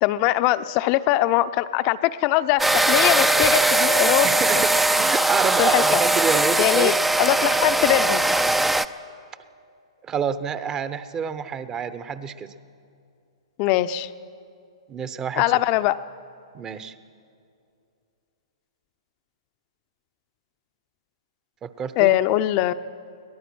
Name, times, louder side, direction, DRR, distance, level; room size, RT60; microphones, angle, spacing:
voice 1, 0.0-4.3 5.6-5.8 6.6-8.2 13.6-14.1 15.4-16.0 22.0-22.7, left 15 dB, 40° left, 13 dB, 0.7 m, -21 dB
sound 1, 2.6-8.9, right 2 dB, 5° right, 0.5 m, -20 dB
voice 2, 4.2-6.9 10.0-12.5 14.9-15.5 16.5-16.9 21.6-22.2, right 7 dB, 20° right, 13 dB, 0.9 m, -28 dB
23.0 x 19.0 x 6.2 m, 2.5 s
hypercardioid pair, 120°, 3 cm